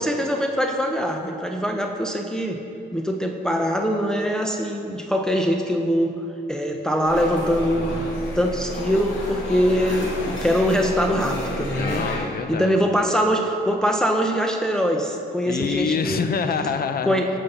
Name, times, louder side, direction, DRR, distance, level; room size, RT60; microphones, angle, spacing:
voice 1, 0.0-2.6 2.9-6.2 6.5-8.0 8.4-12.1 12.5-16.2 17.0-17.3, equal, 5° left, 2 dB, 0.8 m, -23 dB
sound 1, 7.0-12.2, left 1 dB, 75° left, 2.6 m, -31 dB
voice 2, 11.7-12.8 15.5-17.2, left 5 dB, 50° left, 8 dB, 0.8 m, -26 dB
15.0 x 5.4 x 5.5 m, 2.7 s
cardioid pair, 90°, 20 cm